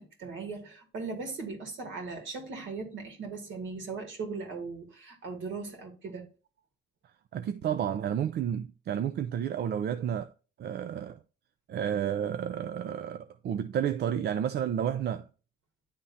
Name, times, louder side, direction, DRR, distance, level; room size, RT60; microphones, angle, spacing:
voice 1, 0.0-6.3, right 4 dB, 75° right, 2.3 m, -38 dB
voice 2, 7.3-10.3 10.6-11.2 11.7-15.2, right 9 dB, 55° right, 0.4 m, -31 dB
10.0 x 3.5 x 2.7 m
cardioid pair, 90°, 20 cm